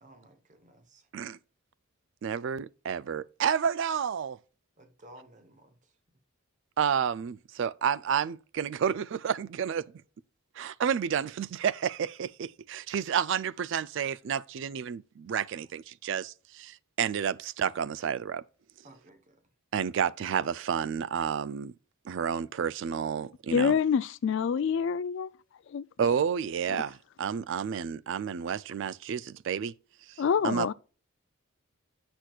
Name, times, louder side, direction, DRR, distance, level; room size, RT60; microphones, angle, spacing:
voice 1, 0.0-1.1 4.8-5.7 18.8-19.4 30.4-30.5, right 1 dB, 35° right, 1.0 m, -55 dB
voice 2, 2.2-4.4 6.8-9.8 10.6-18.4 19.7-21.7 22.1-23.7 26.0-29.7 30.1-30.7, right 7 dB, 60° right, 0.3 m, -30 dB
voice 3, 23.5-25.3 25.7-25.8 30.2-30.7, left 7 dB, 60° left, 0.3 m, -26 dB
8.2 x 6.0 x 2.3 m
head